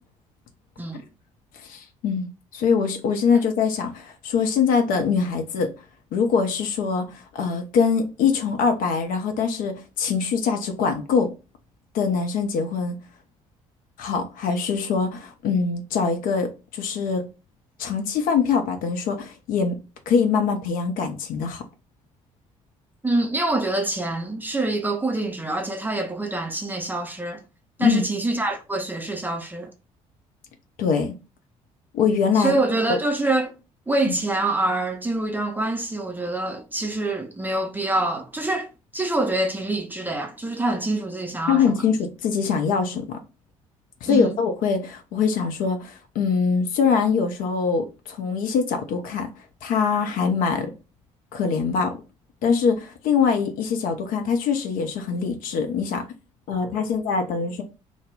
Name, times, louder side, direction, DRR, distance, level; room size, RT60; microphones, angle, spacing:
voice 1, 1.6-5.7 6.1-11.3 11.9-13.0 14.0-17.2 17.8-19.8 20.1-21.6 27.8-28.0 30.8-31.2 31.9-32.5 32.9-33.0 34.1-34.2 41.5-43.2 44.0-49.3 49.6-50.7 51.3-52.0 52.4-56.0 56.5-57.6, left 5 dB, 55° left, 0.5 m, -23 dB
voice 2, 23.0-27.4 27.8-29.7 32.3-33.5 33.9-38.7 38.9-41.8 44.1-44.4, right 2 dB, 10° right, 0.5 m, -25 dB
2.1 x 2.0 x 3.3 m
figure-of-eight pair, 45°, 17 cm